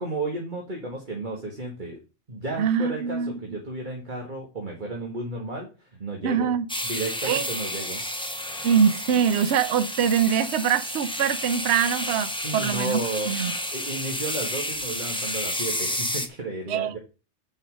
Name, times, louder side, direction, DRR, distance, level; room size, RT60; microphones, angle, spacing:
voice 1, 0.0-2.0 2.3-6.5 6.8-8.0 12.4-13.3 13.7-17.0, right 2 dB, 40° right, 1.9 m, -33 dB
voice 2, 2.6-3.4 6.2-6.7 7.2-7.4 8.6-13.5 16.7-16.9, right 8 dB, 65° right, 0.9 m, -23 dB
sound 1, 6.7-16.3, left 1 dB, 5° left, 1.0 m, -31 dB
8.3 x 5.5 x 5.2 m
omnidirectional pair, 1.3 m